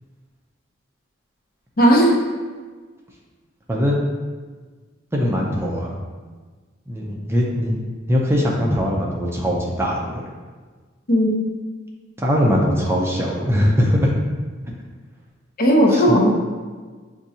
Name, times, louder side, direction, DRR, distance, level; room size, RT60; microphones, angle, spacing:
voice 1, 1.8-2.2 11.1-11.4 15.6-16.3, equal, 45° left, -1 dB, 0.7 m, -15 dB
voice 2, 3.7-4.0 5.1-6.0 6.9-7.8 8.1-10.2 12.2-14.1 15.9-16.0, equal, 10° right, -3 dB, 0.5 m, -21 dB
7.3 x 2.6 x 2.7 m, 1.4 s
head